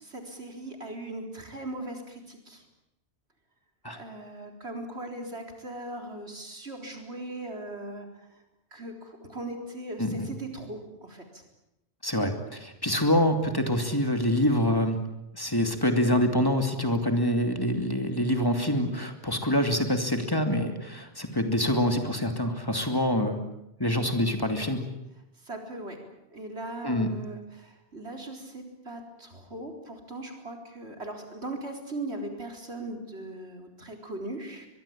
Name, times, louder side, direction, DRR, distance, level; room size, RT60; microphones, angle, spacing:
voice 1, 0.0-2.6 3.9-8.4 8.7-11.4 25.4-26.0 26.3-34.7, right 2 dB, 75° right, 4 dB, 4.4 m, -39 dB
voice 2, 12.0-15.0 15.3-23.4 23.8-24.8 26.8-27.1, left 1 dB, 20° left, 6 dB, 2.7 m, -26 dB
23.0 x 22.5 x 8.7 m, 0.89 s
omnidirectional pair, 1.1 m